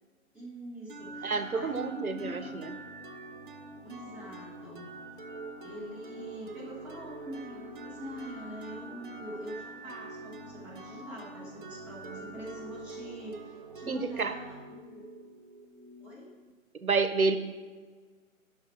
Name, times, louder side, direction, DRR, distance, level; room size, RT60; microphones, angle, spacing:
voice 1, 0.3-2.8 3.8-4.9 5.6-15.0 16.0-16.3, equal, 5° right, -6 dB, 1.2 m, -44 dB
sound 1, 0.9-16.5, right 2 dB, 40° right, 0.8 m, -45 dB
voice 2, 1.2-2.7 13.9-14.3 16.8-17.4, right 4 dB, 90° right, 11 dB, 0.9 m, -29 dB
11.5 x 5.9 x 4.5 m, 1.5 s
figure-of-eight pair, 140°, 42 cm